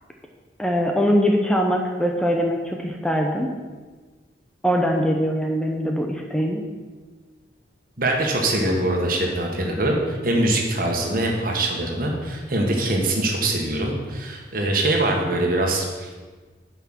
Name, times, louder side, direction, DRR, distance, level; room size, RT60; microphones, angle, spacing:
voice 1, 0.6-3.5 4.6-6.6, equal, 5° left, 1 dB, 0.7 m, -22 dB
voice 2, 8.0-16.2, right 1 dB, 50° right, 1 dB, 1.7 m, -23 dB
9.3 x 5.8 x 6.3 m, 1.4 s
head